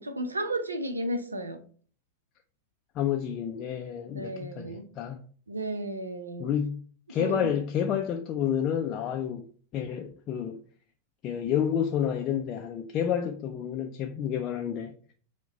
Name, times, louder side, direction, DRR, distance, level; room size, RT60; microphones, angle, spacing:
voice 1, 0.0-1.6 4.1-4.9 5.5-6.5 7.1-7.5, right 1 dB, 80° right, 0.6 m, -33 dB
voice 2, 3.0-5.2 6.4-6.8 7.1-9.5 9.7-10.6 11.2-14.9, left 9 dB, 35° left, 0.4 m, -29 dB
4.6 x 2.2 x 3.9 m
figure-of-eight pair, 90°, 0 cm